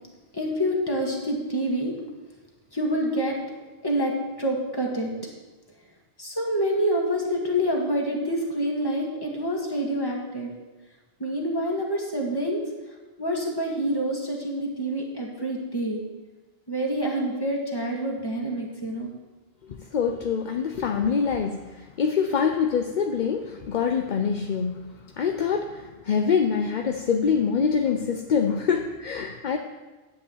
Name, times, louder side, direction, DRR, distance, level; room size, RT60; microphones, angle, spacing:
voice 1, 0.3-1.9 2.7-3.4 3.8-4.1 4.4-5.1 6.2-10.5 11.2-12.6 13.2-16.0 16.7-19.1, equal, 20° left, -1 dB, 2.0 m, -27 dB
voice 2, 19.7-24.8 25.2-29.6, left 6 dB, 50° left, 5 dB, 0.6 m, -25 dB
10.5 x 5.3 x 8.0 m, 1.2 s
omnidirectional pair, 1.2 m